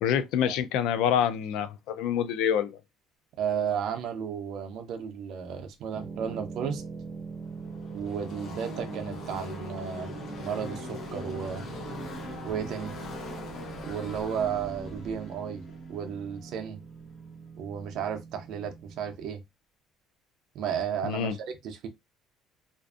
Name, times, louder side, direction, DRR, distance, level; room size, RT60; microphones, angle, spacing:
voice 1, 0.0-2.8 21.0-21.3, left 9 dB, 75° left, 0.3 m, -26 dB
voice 2, 3.4-6.8 7.9-11.7 12.4-12.9 13.8-15.6 15.9-16.8 17.6-19.4 20.5-21.9, right 8 dB, 55° right, 0.5 m, -33 dB
sound 1, 5.9-19.1, right 5 dB, 10° right, 0.9 m, -43 dB
Car passing by / Race car auto racing, 6.9-17.2, left 1 dB, 40° left, 0.8 m, -41 dB
2.5 x 2.4 x 2.4 m
cardioid pair, 170°, 0 cm